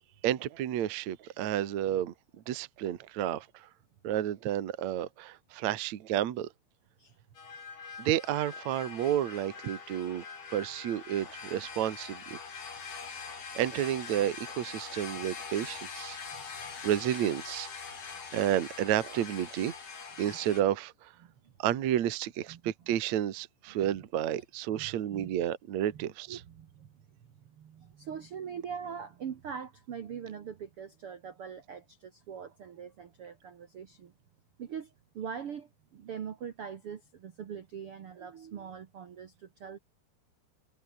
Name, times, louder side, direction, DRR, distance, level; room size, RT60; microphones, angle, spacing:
voice 1, 0.2-2.1 2.5-3.7 4.0-6.5 8.0-10.2 10.5-12.4 13.1-16.2 16.8-17.7 18.3-19.7 20.2-21.1 21.6-26.4, right 11 dB, 55° right, 2.2 m, -31 dB
sound 1, 7.3-20.6, left 5 dB, 40° left, 4.2 m, -43 dB
voice 2, 16.3-16.7 20.3-20.4 21.2-21.3 22.5-22.7 24.7-25.3 25.9-34.1 34.6-39.8, right 7 dB, 80° right, 1.2 m, -43 dB
omnidirectional pair, 4.9 m